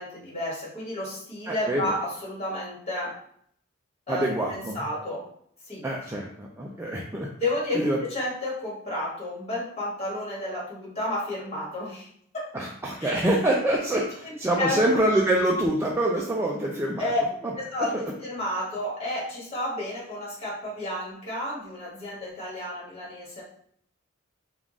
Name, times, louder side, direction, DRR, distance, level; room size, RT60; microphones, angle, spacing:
voice 1, 0.0-3.1 4.1-5.2 5.6-5.8 7.4-12.1 12.3-12.4 13.0-13.1 14.2-15.0 17.0-17.2 17.5-17.9 18.2-23.4, left 1 dB, 30° left, -6 dB, 1.5 m, -31 dB
voice 2, 1.5-1.9 4.1-4.8 5.8-7.3 7.7-8.0 12.5-17.0 17.9-18.0, right 1 dB, 10° right, -2 dB, 0.4 m, -25 dB
3.7 x 2.4 x 3.7 m, 0.66 s
head